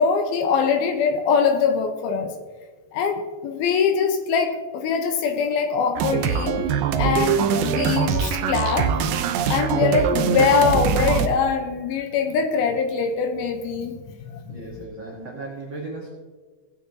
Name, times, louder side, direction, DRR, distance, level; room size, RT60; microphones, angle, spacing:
voice 1, 0.0-2.3 2.9-6.6 7.0-8.9 9.5-13.9 14.2-14.5, left 6 dB, 75° left, 5 dB, 2.6 m, -22 dB
sound 1, 6.0-11.3, right 7 dB, 85° right, 1.9 m, -22 dB
voice 2, 14.5-16.1, right 2 dB, 70° right, -3 dB, 1.1 m, -36 dB
18.0 x 9.2 x 2.8 m, 1.4 s
omnidirectional pair, 4.7 m